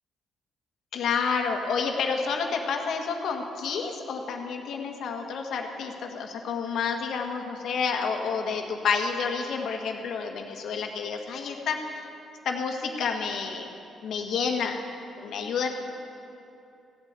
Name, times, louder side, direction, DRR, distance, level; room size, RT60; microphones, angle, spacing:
voice 1, 0.9-12.1 12.4-13.7 14.0-14.8 15.2-15.7, left 5 dB, 70° left, 3 dB, 1.7 m, -29 dB
15.5 x 8.6 x 8.2 m, 2.7 s
cardioid pair, 90°, 0 cm